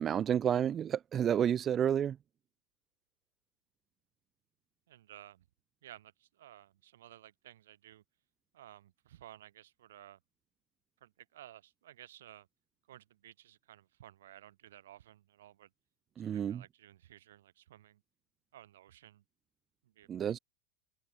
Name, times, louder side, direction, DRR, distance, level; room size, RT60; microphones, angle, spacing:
voice 1, 0.0-2.2 16.2-16.6 20.1-20.4, right 9 dB, 25° right, 0.4 m, -30 dB
voice 2, 4.9-5.5 5.8-8.0 8.5-10.2 11.0-12.5 12.9-15.7 16.2-18.0 18.5-19.2 19.8-20.4, right 12 dB, 85° right, 1.7 m, -55 dB
supercardioid pair, 150°, 0 cm